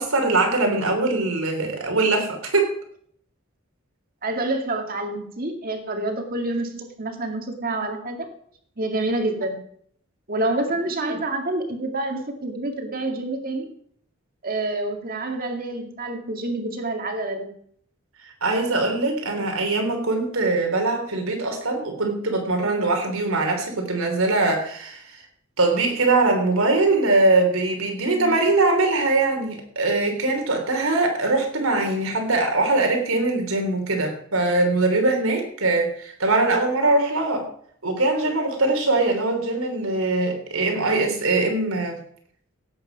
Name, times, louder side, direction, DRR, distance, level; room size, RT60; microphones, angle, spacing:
voice 1, 0.0-2.7 11.0-11.1 18.4-25.0 25.6-37.4 37.8-42.0, right 2 dB, 80° right, 3 dB, 3.5 m, -22 dB
voice 2, 4.2-8.3 8.8-9.6 10.3-13.7 14.4-17.5 28.1-28.5, right 2 dB, 45° right, 4 dB, 2.2 m, -27 dB
16.5 x 8.4 x 5.3 m, 0.62 s
head